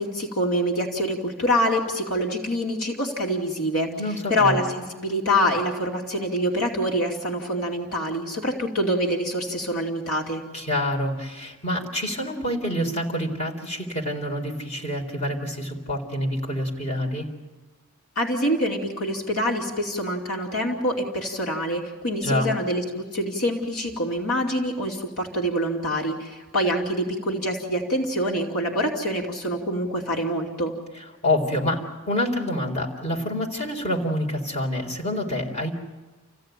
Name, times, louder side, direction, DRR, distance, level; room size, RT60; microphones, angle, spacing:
voice 1, 0.0-3.9 4.3-10.4 18.2-30.7, equal, 75° left, 0 dB, 2.7 m, -25 dB
voice 2, 4.0-4.6 10.5-17.3 22.2-22.5 31.2-35.7, left 1 dB, 30° left, 1 dB, 3.9 m, -27 dB
28.5 x 16.0 x 9.2 m, 1.2 s
head